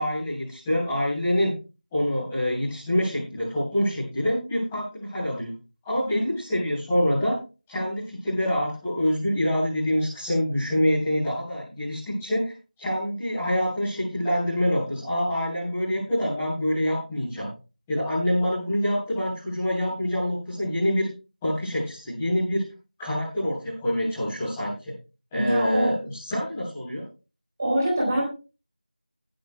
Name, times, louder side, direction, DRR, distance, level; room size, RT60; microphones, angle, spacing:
voice 1, 0.0-1.5 1.9-5.5 5.8-7.3 7.7-12.5 12.8-17.5 17.9-21.1 21.4-22.6 23.0-24.7 25.3-27.0, equal, 5° left, -13 dB, 4.1 m, -26 dB
voice 2, 25.3-25.9 27.6-28.2, right 1 dB, 20° right, -4 dB, 4.2 m, -24 dB
22.0 x 10.5 x 2.3 m, 0.32 s
figure-of-eight pair, 175°, 5 cm